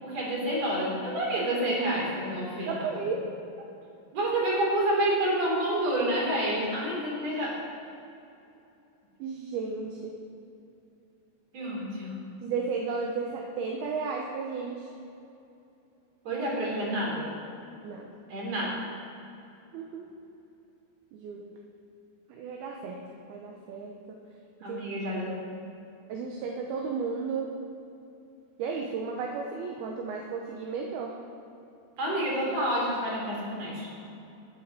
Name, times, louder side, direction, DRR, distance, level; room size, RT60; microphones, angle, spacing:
voice 1, 0.0-2.9 4.1-7.6 11.5-12.2 16.2-17.3 18.3-18.8 24.6-25.3 32.0-34.0, right 1 dB, 40° right, -3 dB, 4.3 m, -29 dB
voice 2, 2.7-3.2 9.2-10.1 12.4-14.9 17.8-18.0 19.7-20.1 21.1-21.5 22.3-23.0 23.3-24.2 24.7-24.8 25.1-25.2 26.1-27.5 28.6-31.1, right 5 dB, 75° right, 0 dB, 2.7 m, -34 dB
16.5 x 7.7 x 6.7 m, 2.7 s
omnidirectional pair, 4.8 m